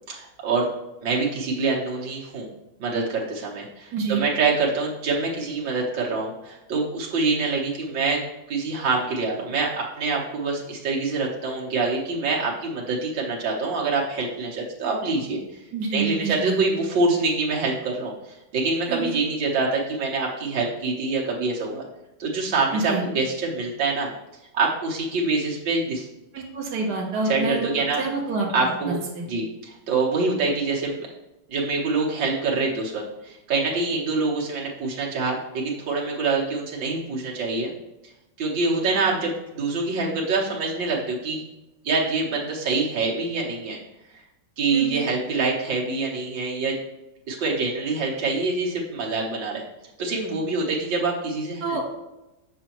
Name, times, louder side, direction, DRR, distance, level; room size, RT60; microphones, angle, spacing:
voice 1, 0.1-0.7 1.0-2.5 2.8-8.2 8.5-15.6 15.9-21.8 22.2-24.1 24.5-26.1 27.2-28.0 28.5-29.0 29.3-31.1 31.5-37.7 38.4-41.4 41.8-43.8 44.1-44.2 44.6-46.8 47.3-49.6 50.0-51.8, right 3 dB, 80° right, -3 dB, 1.9 m, -25 dB
voice 2, 3.9-4.2 15.7-16.6 18.9-19.2 22.7-23.0 26.3-27.7 28.0-28.5 28.9-29.2 44.7-45.0 51.6-51.8, right 4 dB, 65° right, -1 dB, 1.8 m, -27 dB
8.0 x 6.1 x 3.0 m, 0.97 s
omnidirectional pair, 2.0 m